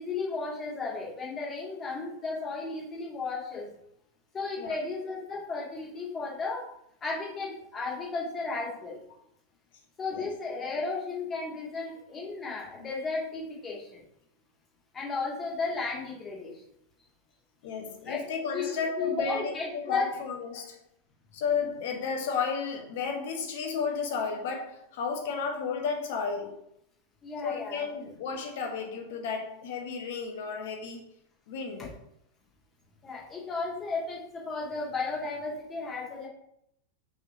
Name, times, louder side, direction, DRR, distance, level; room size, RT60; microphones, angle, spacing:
voice 1, 0.0-3.7 4.3-6.7 7.0-9.0 10.0-14.0 14.9-16.5 18.1-18.2 18.5-20.1 27.2-27.8 33.0-36.3, left 4 dB, 20° left, -4 dB, 2.3 m, -34 dB
voice 2, 17.6-20.8 21.3-26.6 27.4-31.1 31.5-32.0, left 5 dB, 50° left, 3 dB, 1.2 m, -33 dB
5.7 x 3.7 x 4.7 m, 0.73 s
figure-of-eight pair, 90°, 0 cm